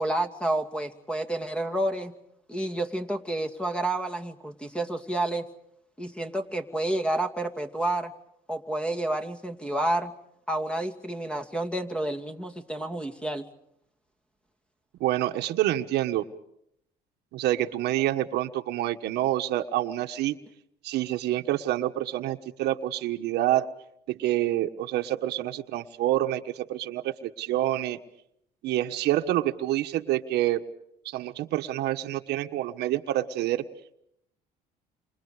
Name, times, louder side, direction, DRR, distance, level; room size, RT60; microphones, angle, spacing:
voice 1, 0.0-2.1 2.5-5.5 6.0-8.1 8.5-10.1 10.5-13.5, right 1 dB, 5° left, 6 dB, 2.5 m, -29 dB
voice 2, 15.0-16.2 17.3-20.4 20.8-23.7 24.1-28.0 28.6-30.6 31.0-33.6, right 14 dB, 80° right, 7 dB, 1.5 m, -27 dB
30.0 x 26.0 x 5.0 m, 0.75 s
cardioid pair, 110°, 17 cm